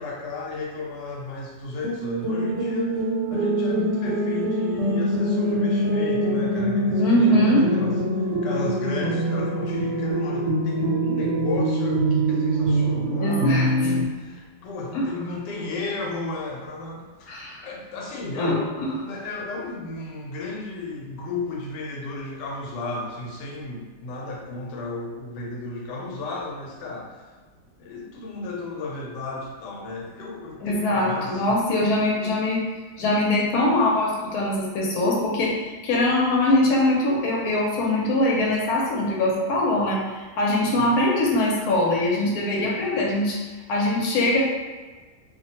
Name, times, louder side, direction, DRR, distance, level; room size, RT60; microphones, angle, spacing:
voice 1, 0.0-3.0 3.3-18.7 19.0-27.2 27.8-31.6 40.7-40.9, left 3 dB, 90° left, -1 dB, 1.2 m, -34 dB
sound 1, 1.8-14.1, right 1 dB, 85° right, 1.2 m, -24 dB
voice 2, 7.0-7.7 13.2-13.9 14.9-15.1 17.3-17.7 18.4-19.0 30.6-32.6 33.0-43.4 43.7-44.4, left 1 dB, 70° left, -3 dB, 1.1 m, -22 dB
2.8 x 2.1 x 2.7 m, 1.3 s
omnidirectional pair, 1.8 m